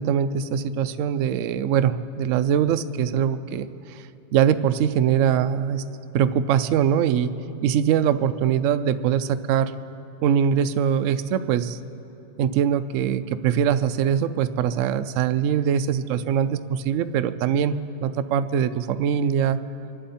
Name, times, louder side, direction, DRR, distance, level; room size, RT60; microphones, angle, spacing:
voice 1, 0.0-4.0 4.3-5.8 6.1-7.3 7.6-9.7 10.2-11.8 12.4-19.6, right 8 dB, 90° right, 11 dB, 0.6 m, -22 dB
25.0 x 11.5 x 4.3 m, 3.0 s
omnidirectional pair, 1.9 m